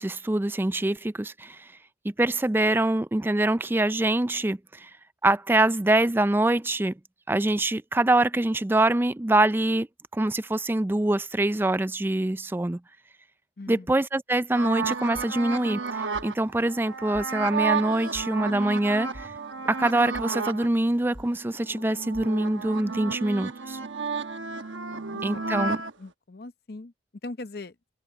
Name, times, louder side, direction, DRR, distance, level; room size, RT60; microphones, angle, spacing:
voice 1, 0.0-1.7 2.0-4.9 5.2-6.9 7.3-9.9 10.1-12.8 13.7-19.3 19.7-23.8 25.2-25.8, right 2 dB, 10° right, 0.3 m, -24 dB
voice 2, 13.6-13.9 24.9-25.4 26.0-26.9 27.2-27.8, left 2 dB, 55° left, 0.7 m, -40 dB
sound 1, 14.5-20.7 21.1-25.9, right 4 dB, 85° right, 1.2 m, -32 dB
sound 2, 15.2-16.3 16.5-16.8 17.1-17.3 17.8-18.8 19.1-23.2, equal, 25° left, 7.2 m, -48 dB
head